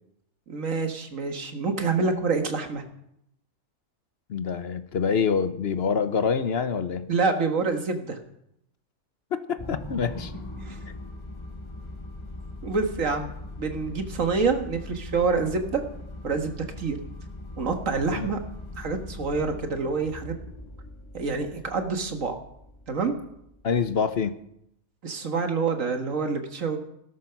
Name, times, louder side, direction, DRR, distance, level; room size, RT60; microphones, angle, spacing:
voice 1, 0.5-2.8 7.1-8.2 10.6-10.8 12.6-15.8 16.2-17.0 17.6-18.4 18.8-20.3 21.1-22.4 22.9-23.2 25.0-26.8, right 4 dB, 80° right, 6 dB, 2.0 m, -27 dB
voice 2, 4.3-7.1 9.3-10.3 18.1-18.3 23.6-24.3, left 6 dB, 55° left, 11 dB, 1.0 m, -26 dB
sound 1, 9.6-24.1, left 2 dB, 20° left, 1.9 m, -41 dB
17.0 x 12.5 x 5.9 m, 0.78 s
omnidirectional pair, 1.4 m